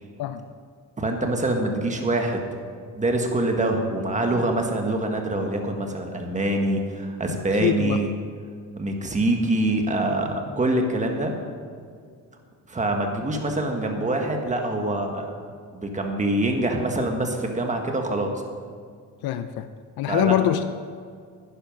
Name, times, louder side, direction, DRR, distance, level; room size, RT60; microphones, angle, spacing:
voice 1, 1.0-2.5 3.0-8.1 8.7-11.3 12.7-15.3 15.7-18.3 20.1-20.4, right 1 dB, 20° right, 3 dB, 1.5 m, -25 dB
voice 2, 7.3-8.0 19.2-19.7 20.0-20.7, left 11 dB, 75° left, 10 dB, 0.6 m, -24 dB
11.0 x 10.0 x 5.3 m, 2.1 s
cardioid pair, 130°, 36 cm